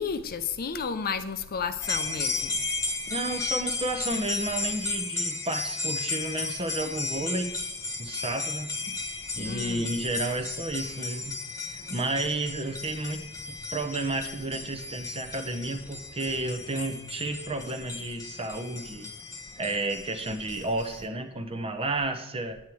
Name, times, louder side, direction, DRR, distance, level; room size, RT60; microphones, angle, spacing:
voice 1, 0.0-2.6 9.4-9.9, left 5 dB, 40° left, 11 dB, 0.6 m, -32 dB
sound 1, 1.8-21.0, left 3 dB, 15° left, 1.2 m, -34 dB
voice 2, 3.1-7.6 8.0-9.0 9.3-11.4 11.7-13.2 13.5-19.1 19.6-22.6, right 2 dB, 25° right, 7 dB, 0.9 m, -32 dB
9.3 x 8.7 x 4.6 m, 0.86 s
head